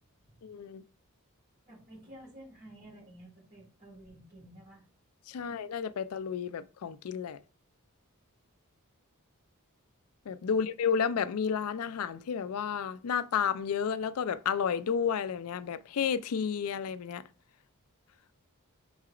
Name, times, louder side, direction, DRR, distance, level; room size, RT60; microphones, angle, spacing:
voice 1, 0.4-0.8 5.3-7.4 10.3-17.2, left 7 dB, 75° left, 0.4 m, -31 dB
voice 2, 1.7-4.9 5.3-5.5 10.4-10.6, right 1 dB, 45° right, 3.8 m, -52 dB
5.6 x 4.0 x 4.8 m
head